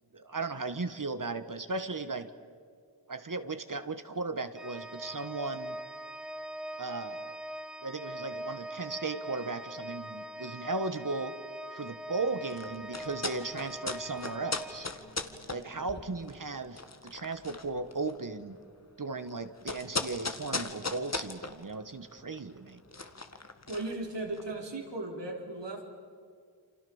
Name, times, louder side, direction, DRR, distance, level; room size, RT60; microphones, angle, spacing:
voice 1, 0.1-2.3 3.1-5.8 6.8-7.4 7.8-11.3 11.7-14.9 15.5-18.6 19.0-22.8, right 3 dB, 45° right, 10 dB, 1.5 m, -36 dB
Organ, 4.5-15.4, right 1 dB, ahead, 1.9 m, -42 dB
sound 1, 12.4-24.6, left 3 dB, 35° left, 1.9 m, -39 dB
voice 2, 23.7-25.8, right 2 dB, 75° right, 1 dB, 4.3 m, -36 dB
29.0 x 25.5 x 7.2 m, 2.1 s
cardioid pair, 50°, 43 cm